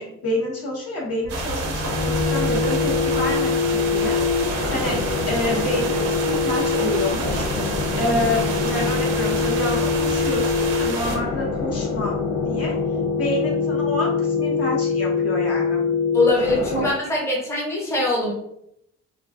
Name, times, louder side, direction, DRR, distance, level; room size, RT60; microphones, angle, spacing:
voice 1, 0.0-12.1 12.4-12.8 13.1-15.8 16.7-16.8, left 1 dB, 55° left, -3 dB, 0.9 m, -28 dB
sound 1, 1.2-16.9, left 5 dB, 75° left, 0.5 m, -24 dB
sound 2, 1.3-11.2, right 3 dB, 55° right, 0.6 m, -28 dB
voice 2, 16.1-18.3, left 2 dB, 10° left, -3 dB, 0.7 m, -22 dB
2.3 x 2.3 x 2.3 m, 0.77 s
cardioid pair, 90°, 30 cm